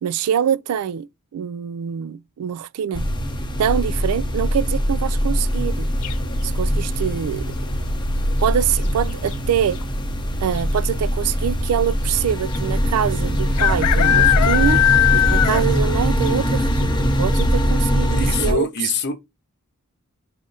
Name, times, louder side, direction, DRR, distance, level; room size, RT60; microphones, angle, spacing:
voice 1, 0.0-3.1 3.6-5.9 6.4-7.5 8.4-9.8 10.4-18.7, right 9 dB, 85° right, 0.3 m, -24 dB
sound 1, 2.9-18.5, equal, 20° left, 0.8 m, -22 dB
sound 2, 6.0-6.5 8.3-8.7 9.0-9.1 9.3-9.8 10.6-10.7 10.9-11.0 12.5-12.6 13.6-15.9 16.2-16.3 16.8-16.9 17.4-17.5, left 12 dB, 90° left, 0.3 m, -19 dB
voice 2, 18.1-19.2, left 5 dB, 50° left, 0.8 m, -25 dB
4.8 x 2.5 x 3.8 m
head